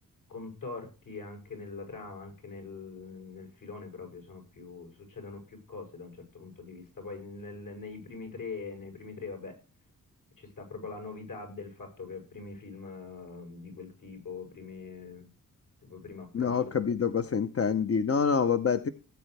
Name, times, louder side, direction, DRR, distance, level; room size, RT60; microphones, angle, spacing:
voice 1, 0.3-9.6 10.4-15.3 15.8-16.7, left 4 dB, 65° left, 3 dB, 7.4 m, -43 dB
voice 2, 16.3-18.9, left 6 dB, 40° left, 10 dB, 0.9 m, -26 dB
18.0 x 9.0 x 3.4 m, 0.32 s
cardioid pair, 90°, 35 cm